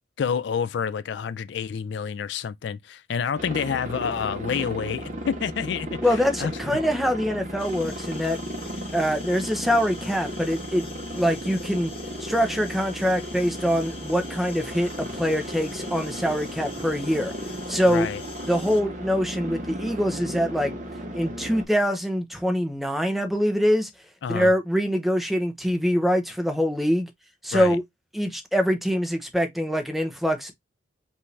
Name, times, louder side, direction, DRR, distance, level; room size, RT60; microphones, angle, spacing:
voice 1, 0.2-6.0 6.4-6.5 17.9-18.2 24.2-24.5 27.5-27.8, left 7 dB, 65° left, 0.3 m, -28 dB
Aircraft, 3.4-21.6, equal, 40° right, 1.2 m, -35 dB
voice 2, 6.0-8.4 8.9-10.9 11.1-11.9 12.2-17.3 17.7-18.1 18.5-20.8 21.1-23.9 24.3-27.1 27.4-27.8 28.1-30.5, equal, ahead, 0.7 m, -24 dB
sound 1, 7.6-18.8, left 5 dB, 30° left, 0.9 m, -45 dB
5.4 x 2.6 x 3.2 m
head